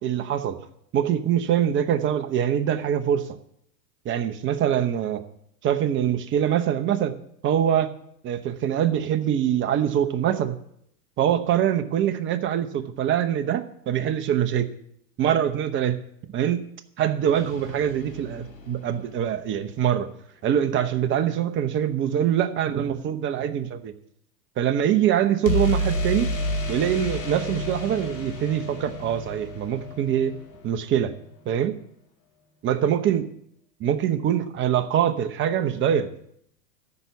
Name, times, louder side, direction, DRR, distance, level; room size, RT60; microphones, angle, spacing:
voice 1, 0.0-0.6 0.9-3.4 4.0-5.2 5.6-7.2 7.4-7.9 8.2-10.6 11.2-14.7 15.2-16.0 16.3-16.6 17.0-20.1 20.4-23.9 24.6-26.3 26.7-30.3 30.6-31.1 31.5-31.7 32.6-33.3 33.8-36.1, right 10 dB, 25° right, 9 dB, 0.9 m, -24 dB
sound 1, 17.3-19.3 25.4-31.2, left 1 dB, 85° left, 2.6 m, -31 dB
14.0 x 6.0 x 7.0 m, 0.72 s
hypercardioid pair, 100°, 49 cm